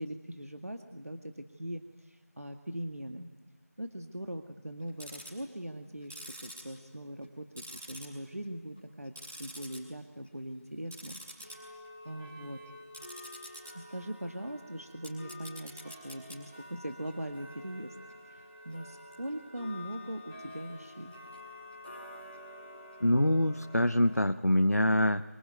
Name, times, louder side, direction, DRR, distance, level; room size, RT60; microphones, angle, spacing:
voice 1, 0.0-3.3 3.8-9.1 9.4-11.7 12.0-12.6 13.7-18.0 18.3-21.2, right 1 dB, 65° right, 6 dB, 2.0 m, -41 dB
Tick-tock, 4.8-5.4 6.0-7.3 7.6-8.4 8.8-9.8 10.2-10.4 10.8-24.3, left 1 dB, 10° right, 2.7 m, -48 dB
voice 2, 23.0-25.2, left 1 dB, 75° left, 9 dB, 1.0 m, -25 dB
25.0 x 24.0 x 9.4 m, 1.2 s
figure-of-eight pair, 175°, 9 cm